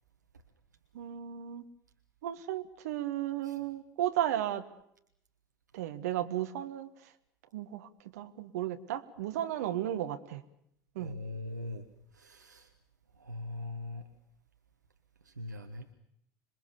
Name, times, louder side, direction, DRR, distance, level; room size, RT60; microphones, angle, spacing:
voice 1, 0.9-1.6 2.2-4.6 5.7-6.9 7.5-10.4 10.9-11.2, right 12 dB, 65° right, 9 dB, 1.5 m, -34 dB
voice 2, 11.0-11.9 12.1-12.7 13.2-14.0 15.3-15.8, left 2 dB, 85° right, 5 dB, 1.3 m, -41 dB
27.0 x 22.0 x 7.0 m, 0.72 s
figure-of-eight pair, 70°, 9 cm